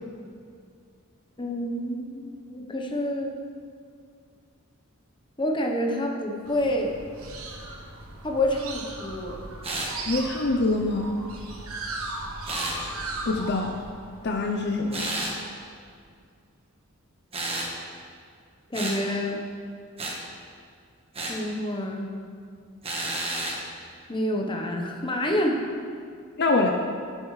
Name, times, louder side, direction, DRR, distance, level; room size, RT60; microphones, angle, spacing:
voice 1, 1.4-3.4 5.4-7.0 8.2-9.4 18.7-19.4 21.3-22.1 24.1-25.6, left 1 dB, 25° left, 2 dB, 1.0 m, -28 dB
sound 1, 6.5-15.5, right 2 dB, 85° right, 1.2 m, -38 dB
sound 2, 9.6-10.0 12.5-12.8 14.9-15.4 17.3-17.7 18.7-19.0 20.0-20.2 21.1-21.4 22.8-23.6, right 2 dB, 30° right, 1.3 m, -31 dB
voice 2, 10.1-11.2 13.3-13.7 14.2-15.1 26.4-26.7, left 2 dB, 50° left, 2 dB, 0.6 m, -24 dB
12.0 x 11.0 x 3.3 m, 2.2 s
head